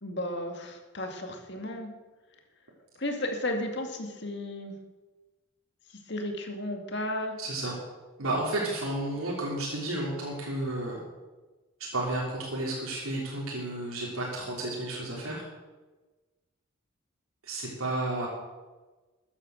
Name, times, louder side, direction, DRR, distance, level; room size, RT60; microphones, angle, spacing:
voice 1, 0.0-1.9 3.0-4.7 6.1-7.3, left 1 dB, 55° left, 3 dB, 2.2 m, -33 dB
voice 2, 7.4-7.8 8.2-11.0 11.8-15.4 17.4-18.3, right 2 dB, 90° right, -3 dB, 3.5 m, -32 dB
14.0 x 9.9 x 6.5 m, 1.2 s
head